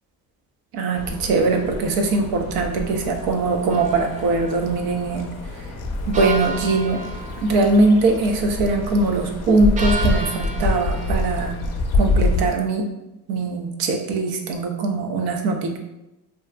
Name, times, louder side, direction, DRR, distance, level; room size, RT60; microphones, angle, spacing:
voice 1, 0.7-5.3 6.1-7.0 7.4-11.6 12.0-12.8 13.3-15.8, right 3 dB, 80° right, 4 dB, 0.5 m, -21 dB
sound 1, 0.9-12.5, left 2 dB, 45° left, 0.5 m, -27 dB
sound 2, 3.7-4.6 6.1-7.9 9.8-11.4, right 3 dB, 20° right, 0.4 m, -32 dB
2.6 x 2.3 x 2.2 m, 0.95 s
supercardioid pair, 75°, 36 cm